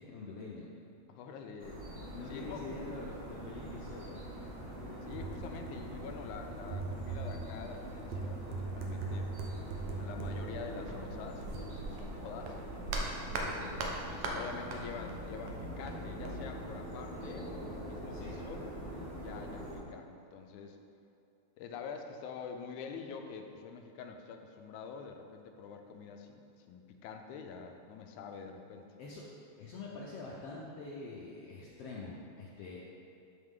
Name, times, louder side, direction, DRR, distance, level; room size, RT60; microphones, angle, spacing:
voice 1, 0.1-0.7 2.1-4.1 18.1-18.4 29.0-29.2 29.6-32.9, left 3 dB, 70° left, -4 dB, 1.5 m, -45 dB
voice 2, 1.1-1.8 2.3-2.8 5.0-9.3 9.9-12.6 13.2-18.6 19.2-20.8 21.6-29.0, left 6 dB, 85° left, 5 dB, 2.1 m, -46 dB
sound 1, 1.6-19.8, equal, 50° right, 2.1 m, -44 dB
sound 2, 4.4-4.5 4.7-12.1 12.4-14.8 15.1-16.3, right 3 dB, 75° right, 1.9 m, -40 dB
12.0 x 4.9 x 3.7 m, 2.7 s
omnidirectional pair, 3.4 m